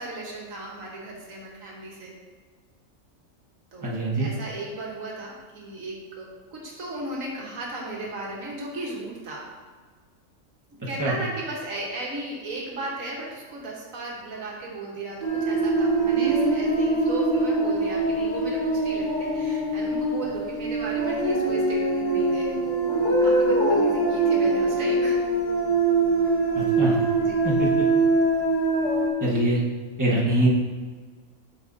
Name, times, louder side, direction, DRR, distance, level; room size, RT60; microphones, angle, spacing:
voice 1, 0.0-2.1 3.7-9.4 10.9-22.6 23.1-25.2 27.2-27.4, right 2 dB, 85° right, -2 dB, 1.7 m, -36 dB
voice 2, 3.8-4.3 11.0-11.1 26.5-27.0 27.4-27.7 29.2-29.6 30.0-30.5, right 1 dB, 15° right, -6 dB, 1.3 m, -23 dB
sound 1, 15.2-29.1, right 2 dB, 65° left, 2.0 m, -23 dB
8.6 x 6.3 x 2.7 m, 1.5 s
omnidirectional pair, 1.4 m